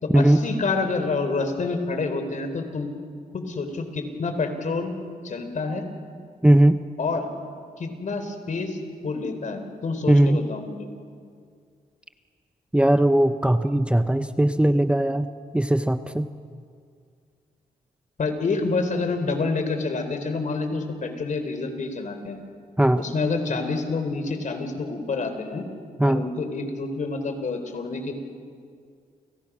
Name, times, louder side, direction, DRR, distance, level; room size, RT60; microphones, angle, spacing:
voice 1, 0.0-2.9 3.3-4.9 5.2-5.8 7.0-7.3 7.8-10.9 18.2-22.4 23.0-25.7 26.1-28.1, left 3 dB, 55° left, 7 dB, 4.2 m, -28 dB
voice 2, 6.4-6.8 10.1-10.4 12.7-15.3 15.5-16.3 22.8-23.0 26.0-26.2, right 1 dB, 5° right, 9 dB, 1.0 m, -19 dB
30.0 x 29.5 x 6.3 m, 2.2 s
cardioid pair, 80°, 15 cm